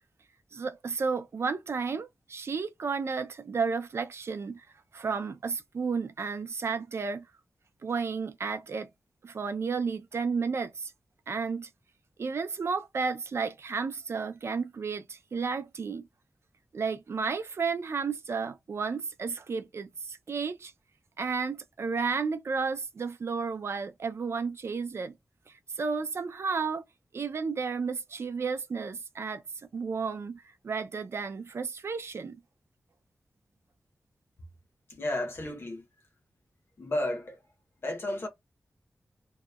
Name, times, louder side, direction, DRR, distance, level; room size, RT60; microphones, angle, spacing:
voice 1, 0.5-4.7 4.9-7.2 7.8-8.9 9.2-10.9 11.3-11.7 12.2-16.1 16.7-20.7 21.2-25.1 25.5-26.8 27.1-29.4 29.7-32.4, right 5 dB, 60° right, 0.4 m, -32 dB
voice 2, 34.9-35.8 36.8-37.4 37.8-38.3, left 1 dB, 50° left, 0.8 m, -32 dB
2.8 x 2.1 x 2.3 m
wide cardioid pair, 130°, 5 cm